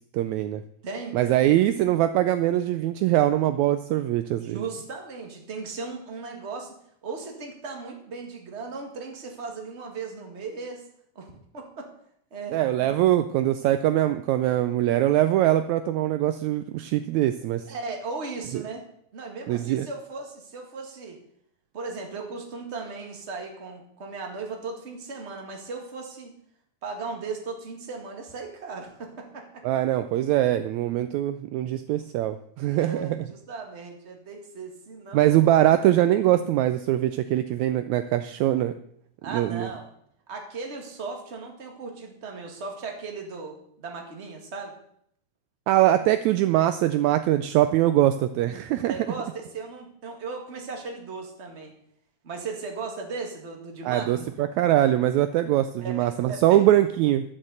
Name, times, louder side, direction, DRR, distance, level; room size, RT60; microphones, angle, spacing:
voice 1, 0.1-0.6 1.1-4.6 12.5-17.6 18.5-18.6 19.5-19.9 29.6-33.3 35.1-38.7 39.3-39.7 45.7-49.0 53.9-57.2, right 13 dB, 80° right, 11 dB, 1.8 m, -22 dB
voice 2, 0.8-1.2 4.4-6.8 7.0-10.8 11.2-11.9 12.3-12.6 17.7-18.8 19.1-21.2 21.7-26.3 26.8-29.6 32.8-35.4 39.2-39.9 40.3-44.8 48.9-51.7 52.2-54.2 55.8-56.0 56.3-56.7, right 4 dB, 25° right, 2 dB, 1.7 m, -37 dB
12.0 x 6.5 x 7.7 m, 0.70 s
omnidirectional pair, 3.5 m